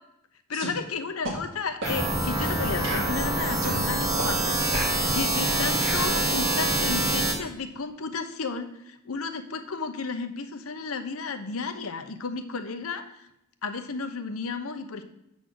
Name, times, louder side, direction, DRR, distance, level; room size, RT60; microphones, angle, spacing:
voice 1, 0.5-4.6 4.9-13.1 13.6-15.0, left 4 dB, 85° left, 8 dB, 0.8 m, -33 dB
sound 1, 0.5-0.7 1.2-1.4 1.8-2.0 2.4-2.5 2.8-3.8 4.2-4.3 4.7-6.1, right 1 dB, 65° right, 1.9 m, -34 dB
sound 2, 1.8-7.3, right 1 dB, 15° right, 1.2 m, -25 dB
8.1 x 4.0 x 6.2 m, 0.84 s
head